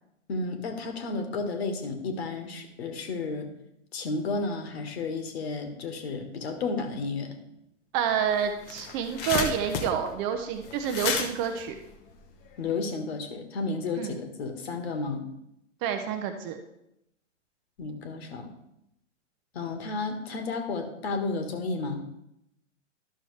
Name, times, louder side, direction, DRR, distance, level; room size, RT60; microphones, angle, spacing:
voice 1, 0.3-3.5 3.9-7.3 12.6-15.3 17.8-18.5 19.5-22.0, left 3 dB, 55° left, 6 dB, 1.6 m, -32 dB
voice 2, 7.9-11.7 14.0-14.1 15.8-16.6, right 8 dB, 25° right, 6 dB, 0.7 m, -28 dB
sound 1, 8.1-8.2 8.5-12.7, left 6 dB, 25° left, 0.8 m, -32 dB
12.0 x 6.2 x 3.3 m, 0.81 s
figure-of-eight pair, 115°, 38 cm